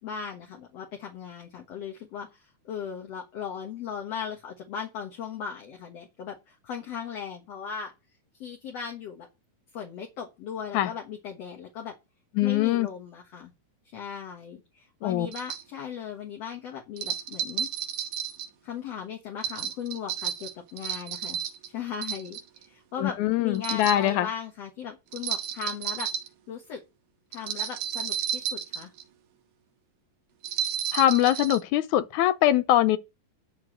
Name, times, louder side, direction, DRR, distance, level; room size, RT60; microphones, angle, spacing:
voice 1, 0.0-7.9 8.4-9.3 9.7-12.0 12.4-13.5 13.9-17.7 18.6-21.4 21.7-22.4 22.7-26.1 26.5-26.8 27.3-28.9, left 7 dB, 55° left, 2.3 m, -37 dB
voice 2, 12.4-12.9 15.0-15.3 23.0-24.3 30.9-33.0, left 13 dB, 75° left, 2.1 m, -23 dB
sound 1, 15.3-15.6 17.0-18.5 19.4-21.7 22.0-22.6 23.6-24.1 25.1-26.3 27.3-29.0 30.4-31.6, right 9 dB, 75° right, 2.5 m, -32 dB
11.0 x 4.5 x 7.6 m
omnidirectional pair, 3.8 m